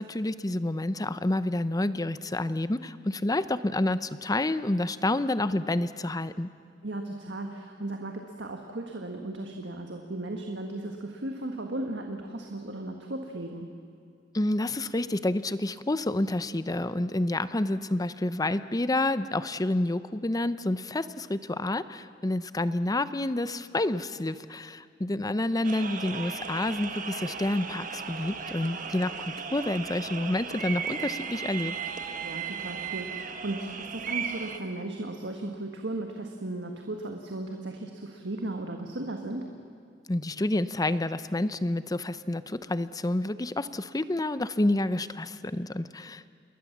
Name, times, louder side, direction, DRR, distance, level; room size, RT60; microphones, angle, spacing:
voice 1, 0.0-6.5 14.3-31.8 40.1-46.3, left 1 dB, 20° left, 14 dB, 0.7 m, -29 dB
voice 2, 6.8-13.8 32.2-39.5, right 2 dB, 70° right, 3 dB, 1.7 m, -36 dB
sound 1, 25.6-34.6, right 6 dB, 45° right, 1.4 m, -36 dB
28.0 x 21.0 x 7.3 m, 2.3 s
head